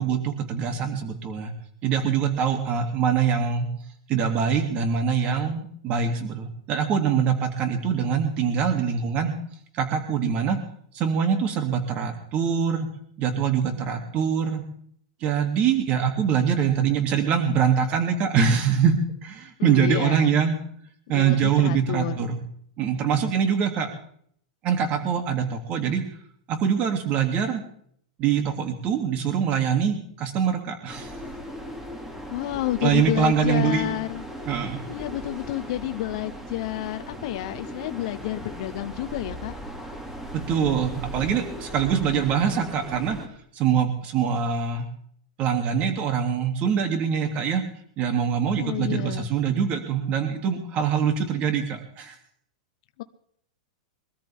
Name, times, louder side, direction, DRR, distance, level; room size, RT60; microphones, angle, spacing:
voice 1, 0.0-1.5 1.8-3.7 4.1-9.3 9.7-10.6 10.9-12.9 13.2-14.6 15.2-18.9 19.2-20.5 21.1-22.4 22.8-23.9 24.6-26.0 26.5-27.6 28.2-31.1 32.8-33.9 34.5-34.8 40.3-43.2 43.5-44.8 45.4-47.6 48.0-52.1, right 7 dB, 30° right, 5 dB, 3.0 m, -24 dB
voice 2, 19.6-20.3 21.1-22.3 32.3-34.2 34.9-39.5 48.5-49.3 53.0-53.1, left 15 dB, 55° left, 9 dB, 1.1 m, -30 dB
sound 1, 30.9-43.3, equal, 10° right, 2.5 m, -38 dB
23.5 x 13.5 x 3.8 m, 0.63 s
supercardioid pair, 150°, 4 cm